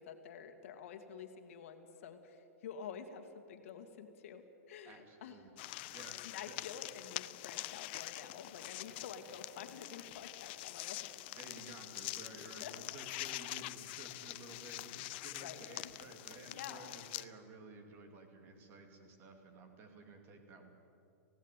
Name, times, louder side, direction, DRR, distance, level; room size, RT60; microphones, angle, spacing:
voice 1, 0.0-5.4 6.2-11.0 11.5-11.7 12.6-12.7 13.5-13.6 15.4-15.9 16.5-17.0, left 7 dB, 60° left, 6 dB, 2.1 m, -49 dB
voice 2, 4.8-5.5 5.9-6.6 8.9-9.0 9.6-9.7 11.3-20.7, right 2 dB, 25° right, 5 dB, 2.6 m, -54 dB
sound 1, 5.6-17.3, left 18 dB, 45° left, 0.5 m, -45 dB
17.5 x 16.5 x 9.1 m, 2.8 s
hypercardioid pair, 155°, 8 cm